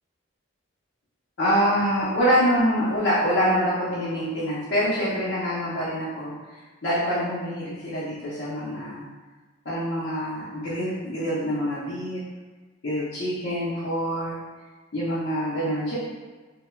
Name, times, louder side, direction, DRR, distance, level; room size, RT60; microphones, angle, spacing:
voice 1, 1.4-9.1 9.6-12.2 12.8-14.3 14.9-15.9, equal, 60° left, -9 dB, 0.6 m, -25 dB
2.2 x 2.1 x 3.0 m, 1.3 s
head